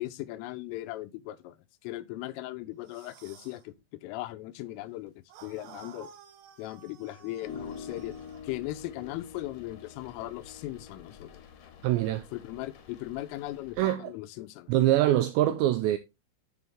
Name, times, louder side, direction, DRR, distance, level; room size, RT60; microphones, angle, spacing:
voice 1, 0.0-5.1 5.4-6.1 6.6-8.1 8.4-11.4 12.3-14.7, left 16 dB, 85° left, 3.4 m, -38 dB
sound 1, 2.8-3.6 5.3-8.5, right 8 dB, 65° right, 2.4 m, -53 dB
sound 2, 7.4-13.8, left 6 dB, 65° left, 2.1 m, -46 dB
voice 2, 11.8-12.3 13.8-14.1 14.7-16.0, right 14 dB, 85° right, 2.5 m, -24 dB
12.0 x 4.9 x 3.6 m
omnidirectional pair, 5.7 m